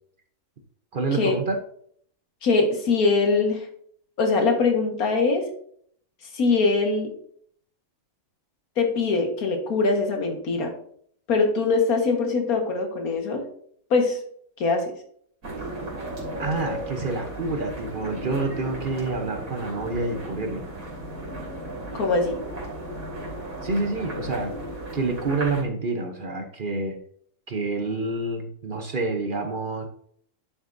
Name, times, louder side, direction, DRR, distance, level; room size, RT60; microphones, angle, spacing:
voice 1, 0.9-1.6 16.4-20.7 23.6-24.5 24.9-27.0 27.5-29.9, right 3 dB, 45° right, 5 dB, 0.9 m, -28 dB
voice 2, 2.4-3.7 4.2-5.5 6.3-7.1 8.8-10.7 11.3-13.5 13.9-14.2 14.6-14.9 21.9-22.4, left 4 dB, 90° left, 3 dB, 1.9 m, -22 dB
sound 1, 15.4-25.6, right 1 dB, 70° right, 3.3 m, -35 dB
11.0 x 6.2 x 2.6 m, 0.62 s
omnidirectional pair, 1.5 m